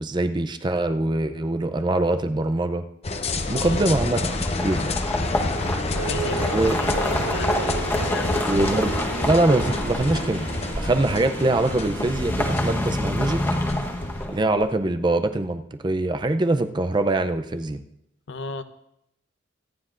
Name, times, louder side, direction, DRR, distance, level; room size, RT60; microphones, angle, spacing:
voice 1, 0.0-2.8 3.5-4.9 6.5-6.8 8.5-10.5 10.8-13.4 14.2-17.8, right 2 dB, 20° right, 9 dB, 0.5 m, -23 dB
sound 1, 3.0-14.3, left 2 dB, 30° left, 0.7 m, -29 dB
voice 2, 3.5-3.8 5.5-8.5 18.3-18.6, left 3 dB, 65° left, 10 dB, 0.7 m, -36 dB
sound 2, 3.8-14.7, left 1 dB, 10° left, 1.1 m, -28 dB
sound 3, 5.9-14.2, right 6 dB, 90° right, 0.4 m, -36 dB
24.5 x 9.6 x 2.5 m, 0.80 s
head